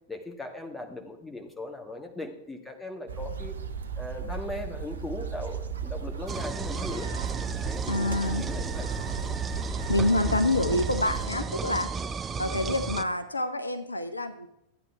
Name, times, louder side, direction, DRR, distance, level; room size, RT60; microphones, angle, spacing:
voice 1, 0.1-3.6 4.0-7.1 7.6-8.9 10.2-10.4, left 2 dB, 10° left, 4 dB, 1.9 m, -39 dB
sound 1, 3.1-11.3, right 7 dB, 70° right, 0.8 m, -36 dB
sound 2, 6.3-13.0, right 4 dB, 20° right, 0.6 m, -33 dB
voice 2, 7.9-8.5 9.9-11.9 12.4-14.5, left 2 dB, 80° left, 10 dB, 0.8 m, -27 dB
14.0 x 8.8 x 4.7 m, 0.82 s
figure-of-eight pair, 90°, 0 cm